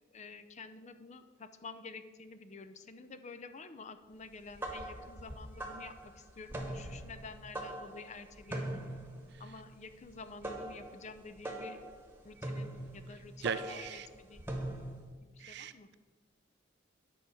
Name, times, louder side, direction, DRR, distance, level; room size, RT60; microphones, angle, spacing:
voice 1, 0.1-8.9 9.4-11.8 12.2-14.5 15.2-15.9, left 4 dB, 35° left, 10 dB, 0.5 m, -50 dB
sound 1, 4.3-15.1, right 1 dB, 10° right, 1.2 m, -42 dB
voice 2, 13.4-14.1 15.4-15.7, right 6 dB, 60° right, 13 dB, 0.5 m, -37 dB
9.9 x 4.9 x 6.9 m, 1.4 s
head